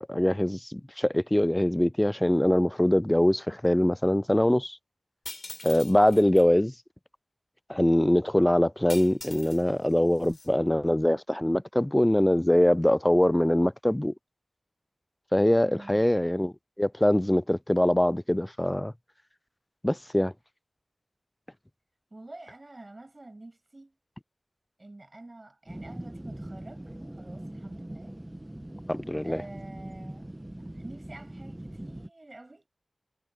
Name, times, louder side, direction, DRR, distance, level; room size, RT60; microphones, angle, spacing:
voice 1, 0.0-4.8 5.6-6.7 7.7-14.1 15.3-18.9 19.8-20.3 28.9-29.4, left 1 dB, 15° left, 0.3 m, -23 dB
sound 1, 5.3-6.5 8.9-9.6 9.9-10.5, left 2 dB, 50° left, 3.7 m, -42 dB
voice 2, 15.6-16.0 22.1-24.0 24.8-28.2 29.2-30.3 30.8-32.7, right 2 dB, 35° right, 6.4 m, -47 dB
sound 2, 25.7-32.1, right 1 dB, 15° right, 1.2 m, -42 dB
wide cardioid pair, 60°, 0 cm